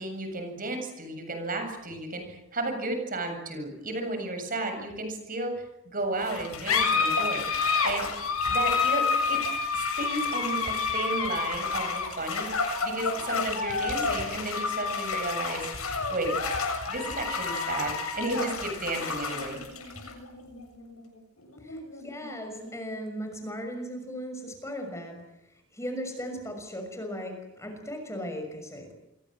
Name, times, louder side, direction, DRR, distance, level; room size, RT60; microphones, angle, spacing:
voice 1, 0.0-8.1 8.5-9.4 9.7-12.5 12.8-15.7 16.1-16.3 16.9-19.6, right 2 dB, 40° right, 6 dB, 7.5 m, -33 dB
sound 1, 6.2-23.2, left 4 dB, 80° left, 7.2 m, -30 dB
voice 2, 21.6-25.2 25.7-28.9, equal, 15° left, 5 dB, 6.2 m, -37 dB
28.5 x 24.5 x 7.8 m, 0.87 s
head